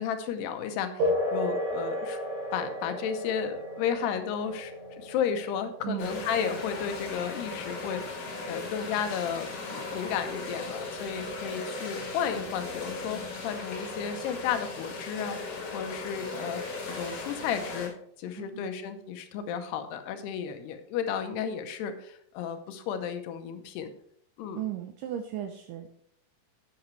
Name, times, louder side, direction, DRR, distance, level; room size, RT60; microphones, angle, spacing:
voice 1, 0.0-2.2 2.5-16.6 16.9-17.9 18.2-23.9 24.4-24.6, left 8 dB, 85° left, 8 dB, 2.9 m, -33 dB
sound 1, 1.0-9.0, left 1 dB, 40° right, 3.9 m, -34 dB
voice 2, 5.8-6.3 18.3-18.7 24.5-25.9, right 11 dB, 80° right, 5 dB, 2.0 m, -36 dB
sound 2, 6.0-17.9, left 3 dB, 55° left, 3.3 m, -37 dB
11.0 x 8.5 x 3.2 m, 0.66 s
omnidirectional pair, 4.7 m